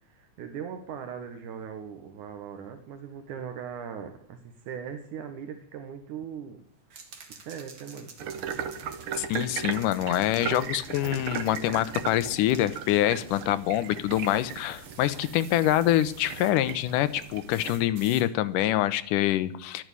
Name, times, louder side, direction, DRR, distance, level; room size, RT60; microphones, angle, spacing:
voice 1, 0.0-6.6 7.3-8.1, right 7 dB, 80° right, 6 dB, 2.6 m, -39 dB
sound 1, 6.9-13.5 14.1-16.6 17.5-18.3, right 5 dB, 45° right, 2.2 m, -50 dB
sound 2, 8.2-17.9, right 7 dB, 60° right, 1.5 m, -37 dB
voice 2, 9.2-19.8, left 13 dB, 85° left, 14 dB, 2.3 m, -25 dB
12.5 x 9.4 x 8.1 m, 0.63 s
omnidirectional pair, 3.6 m